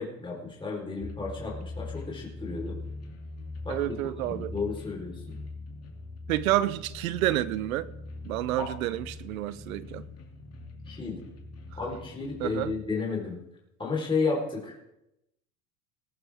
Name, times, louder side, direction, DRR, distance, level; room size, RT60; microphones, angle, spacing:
voice 1, 0.0-2.8 3.6-4.0 4.2-5.4 8.6-8.7 10.9-11.2 11.7-13.4 13.8-14.9, left 4 dB, 10° left, 4.0 m, -32 dB
sound 1, 1.0-12.9, left 3 dB, 20° right, 2.5 m, -43 dB
sound 2, 1.1-12.3, left 2 dB, 35° left, 2.7 m, -48 dB
voice 2, 3.7-4.5 6.3-7.9 8.2-10.0 12.4-12.7, right 14 dB, 80° right, 0.8 m, -29 dB
20.0 x 11.0 x 3.5 m
hypercardioid pair, 90°, 41 cm